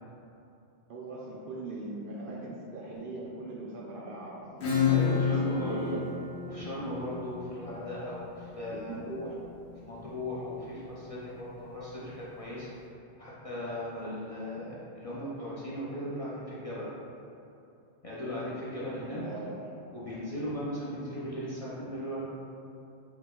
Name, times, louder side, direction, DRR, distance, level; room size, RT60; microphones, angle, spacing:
voice 1, 0.9-4.6 4.9-6.1 8.7-9.4 19.2-19.5, right 2 dB, 60° right, -4 dB, 0.6 m, -40 dB
Acoustic guitar / Strum, 4.6-10.0, left 6 dB, 70° left, 1.1 m, -31 dB
voice 2, 4.9-5.9 6.5-8.9 9.9-12.7 13.2-16.9 18.0-19.2 19.9-22.2, equal, 40° left, -8 dB, 0.5 m, -37 dB
4.5 x 2.2 x 3.7 m, 2.7 s
omnidirectional pair, 1.1 m